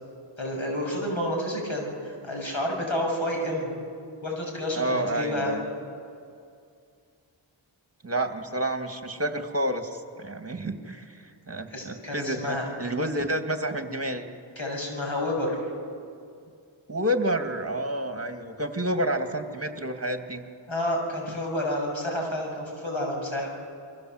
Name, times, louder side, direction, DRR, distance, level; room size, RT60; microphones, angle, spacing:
voice 1, 0.4-3.7 4.2-5.5 11.7-12.7 14.6-15.6 20.7-23.5, left 1 dB, 70° left, 0 dB, 7.1 m, -29 dB
voice 2, 4.7-5.6 8.0-14.3 16.9-20.4 21.3-21.4, right 1 dB, 30° right, 6 dB, 2.5 m, -29 dB
29.0 x 23.0 x 8.0 m, 2.3 s
wide cardioid pair, 45°, 49 cm